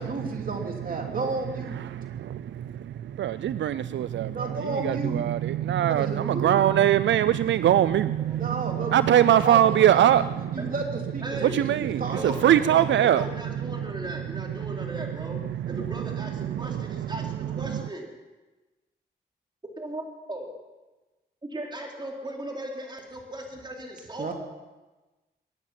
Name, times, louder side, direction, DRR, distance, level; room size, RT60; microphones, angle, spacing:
voice 1, 0.0-1.9 4.3-5.3 5.8-6.5 8.3-12.7 24.2-24.3, right 3 dB, 50° right, 3.0 m, -33 dB
voice 2, 1.8-2.7 3.2-4.6 4.8-8.5 8.9-10.6 11.5-13.2, right 11 dB, 80° right, 0.4 m, -22 dB
voice 3, 11.2-11.6 12.1-15.4 15.7-18.1 19.8-20.5 21.5-24.3, right 1 dB, 25° right, 3.9 m, -37 dB
23.0 x 10.0 x 5.8 m
cardioid pair, 70°, 19 cm